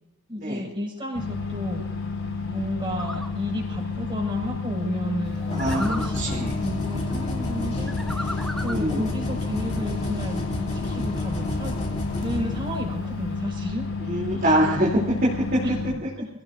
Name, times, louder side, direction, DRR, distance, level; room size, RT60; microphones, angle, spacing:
voice 1, 0.3-1.9 2.5-11.7 12.2-13.9 15.6-16.3, equal, 25° right, -2 dB, 5.6 m, -32 dB
sound 1, 1.1-15.9, left 4 dB, 70° left, 6.3 m, -31 dB
sound 2, 3.0-3.3 5.6-6.2 7.9-8.9, equal, ahead, 0.9 m, -35 dB
sound 3, 5.2-13.2, left 1 dB, 30° left, 3.0 m, -31 dB
voice 2, 5.5-5.8 6.1-6.5 8.6-9.1 14.0-15.6, right 1 dB, 40° right, -5 dB, 3.1 m, -24 dB
27.5 x 17.0 x 2.6 m, 0.89 s
head